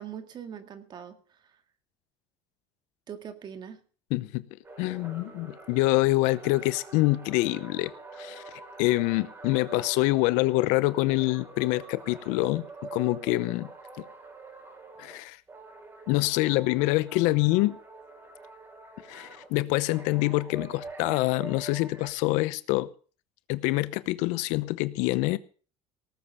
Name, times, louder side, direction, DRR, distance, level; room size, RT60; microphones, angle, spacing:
voice 1, 0.0-1.6 3.1-3.8, right 8 dB, 35° right, 9 dB, 2.0 m, -42 dB
voice 2, 4.1-4.5 4.8-7.9 8.2-8.4 8.8-12.7 12.9-13.7 14.0-14.1 15.0-15.4 16.1-17.8 19.1-22.9 23.5-25.4, left 20 dB, 75° left, 17 dB, 0.8 m, -26 dB
sound 1, 4.6-15.2 15.5-19.5 19.9-22.1, right 3 dB, 20° right, 4.8 m, -45 dB
18.5 x 7.6 x 6.9 m, 0.40 s
cardioid pair, 135°, 13 cm